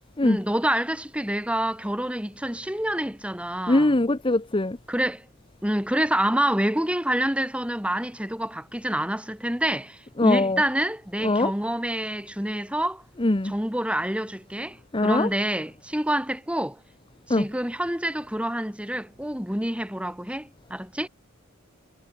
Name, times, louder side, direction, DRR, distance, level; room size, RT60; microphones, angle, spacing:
voice 1, 0.2-4.0 4.9-5.3 5.6-13.0 13.4-16.8 17.3-21.1, right 1 dB, 5° right, 5.1 m, -27 dB
voice 2, 3.7-4.8 10.2-10.6 11.2-11.5 13.2-13.5 14.9-15.3 17.3-17.4, left 2 dB, 25° left, 0.8 m, -21 dB
head